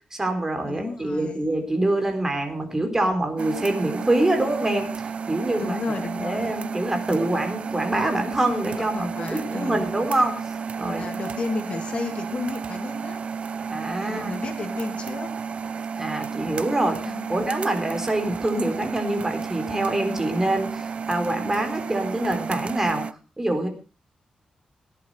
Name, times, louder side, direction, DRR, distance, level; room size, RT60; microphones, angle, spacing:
voice 1, 0.1-10.4 10.8-11.0 13.6-14.3 16.0-23.1 23.4-23.7, right 1 dB, 20° right, 6 dB, 3.9 m, -25 dB
voice 2, 0.6-1.5 5.6-6.6 8.8-10.0 10.9-13.2 14.0-15.3 17.1-17.5, left 4 dB, 50° left, 6 dB, 2.8 m, -33 dB
sound 1, 3.4-23.1, right 6 dB, 50° right, 0.8 m, -32 dB
17.5 x 11.0 x 4.8 m, 0.33 s
wide cardioid pair, 120°, 3 cm